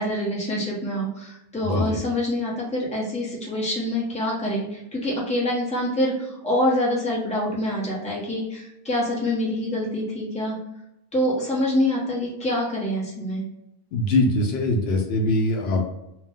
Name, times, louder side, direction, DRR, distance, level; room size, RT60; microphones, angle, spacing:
voice 1, 0.0-10.5 11.1-13.4, left 1 dB, 5° left, -5 dB, 0.7 m, -26 dB
voice 2, 1.6-2.0 13.9-15.9, left 2 dB, 75° left, 2 dB, 0.8 m, -22 dB
2.5 x 2.1 x 3.4 m, 0.86 s
omnidirectional pair, 1.1 m